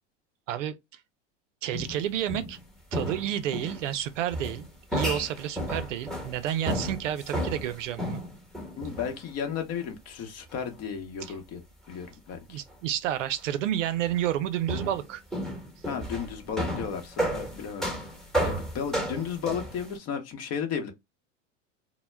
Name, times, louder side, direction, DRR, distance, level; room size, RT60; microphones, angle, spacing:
voice 1, 1.6-2.6 2.9-8.2 11.2-11.3 12.5-15.2, right 11 dB, 90° right, 0.5 m, -30 dB
sound 1, 1.7-2.6 2.9-3.9 4.3-9.2 9.9-10.0 11.2-11.3 12.7-12.8 14.1-14.3 14.7-20.0, equal, ahead, 1.0 m, -33 dB
voice 2, 8.7-11.6 11.9-12.6 15.9-17.9 18.4-20.9, left 7 dB, 40° left, 0.9 m, -34 dB
2.1 x 2.0 x 3.2 m
supercardioid pair, 115°, 37 cm